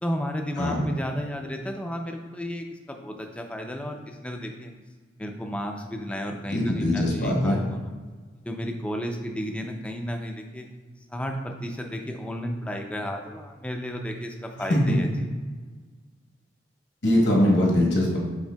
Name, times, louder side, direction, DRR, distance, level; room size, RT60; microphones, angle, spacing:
voice 1, 0.0-4.7 5.2-7.9 8.5-10.7 11.1-15.3, equal, 5° left, 3 dB, 0.3 m, -33 dB
voice 2, 6.5-7.6 14.7-15.0 17.0-18.2, left 1 dB, 70° left, -2 dB, 1.0 m, -22 dB
7.1 x 3.3 x 2.2 m, 1.4 s
head